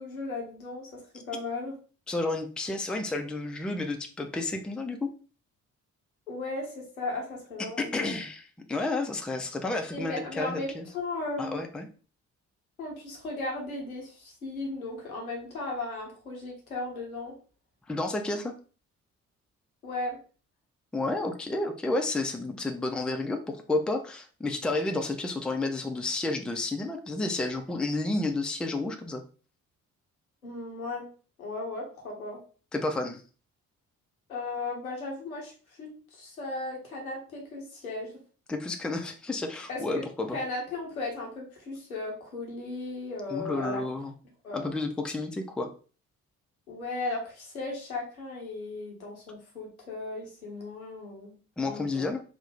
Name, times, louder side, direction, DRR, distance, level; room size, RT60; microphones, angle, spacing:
voice 1, 0.0-1.8 6.3-8.2 9.9-11.6 12.8-17.4 19.8-20.2 30.4-31.1 31.4-32.4 34.3-38.1 39.7-40.0 40.3-43.8 44.4-44.7 46.7-52.1, left 2 dB, 85° left, 0 dB, 0.7 m, -36 dB
voice 2, 2.1-5.1 7.8-10.9 11.4-11.9 17.9-18.6 20.9-29.2 32.7-33.2 38.5-40.4 43.3-44.1 44.5-45.7 51.6-52.2, left 2 dB, ahead, 5 dB, 0.4 m, -31 dB
3.0 x 2.0 x 3.3 m, 0.38 s
figure-of-eight pair, 40°, 42 cm